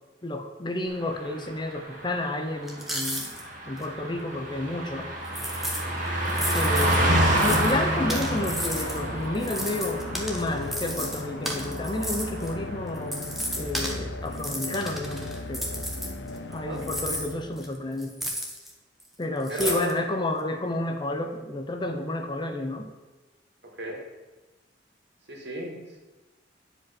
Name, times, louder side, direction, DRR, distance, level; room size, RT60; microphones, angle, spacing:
voice 1, 0.2-3.3 3.6-5.1 6.5-13.3 13.6-15.7 16.5-18.2 19.2-22.9, left 2 dB, 25° left, 5 dB, 0.7 m, -31 dB
Car passing by, 1.0-12.9 13.2-13.4, right 1 dB, 45° right, 1.8 m, -29 dB
sound 1, 2.7-3.4 3.8-3.9 5.2-5.8 6.2-7.7 8.1-9.0 9.3-12.5 13.0-14.0 14.3-16.5 16.8-18.7 19.0-19.1 19.4-19.9, equal, ahead, 1.2 m, -33 dB
sound 2, 6.1-17.9, left 2 dB, 65° left, 0.8 m, -37 dB
voice 2, 16.5-16.8 19.5-19.9 23.8-24.0 25.3-26.0, right 1 dB, 65° right, -1 dB, 2.3 m, -34 dB
9.7 x 5.2 x 5.9 m, 1.1 s
head